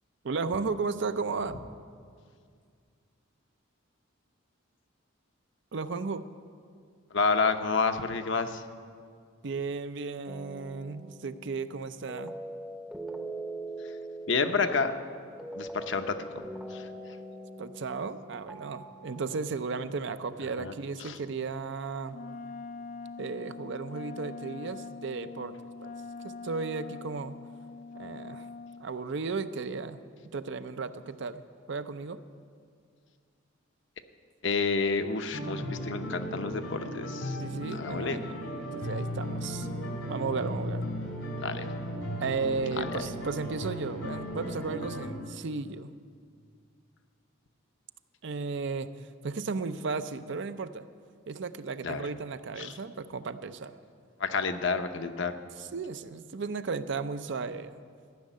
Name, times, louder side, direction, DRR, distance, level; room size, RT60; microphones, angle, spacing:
voice 1, 0.2-1.6 5.7-6.3 9.4-12.3 17.6-22.2 23.2-25.6 25.8-25.9 26.2-27.4 28.0-28.5 28.8-30.0 30.3-31.4 31.7-32.2 37.4-38.3 38.6-39.7 40.0-40.8 42.2-45.9 48.2-48.9 49.2-50.8 51.3-53.7 55.7-57.7, right 4 dB, 60° right, 12 dB, 0.5 m, -34 dB
voice 2, 7.1-8.6 14.3-14.9 15.6-16.4 16.7-16.9 20.6-20.7 21.0-21.2 34.4-37.4 37.7-38.2 41.4-41.6 42.8-42.9 51.8-52.1 52.6-52.8 54.2-55.4, left 4 dB, 60° left, 8 dB, 0.7 m, -29 dB
sound 1, 10.3-19.4, right 1 dB, 5° right, 0.7 m, -42 dB
Wind instrument woodwind instrument, 22.1-28.9, left 4 dB, 40° left, 0.3 m, -43 dB
sound 2, 35.3-45.1, equal, 85° left, 2.4 m, -36 dB
14.0 x 6.4 x 10.0 m, 2.2 s
head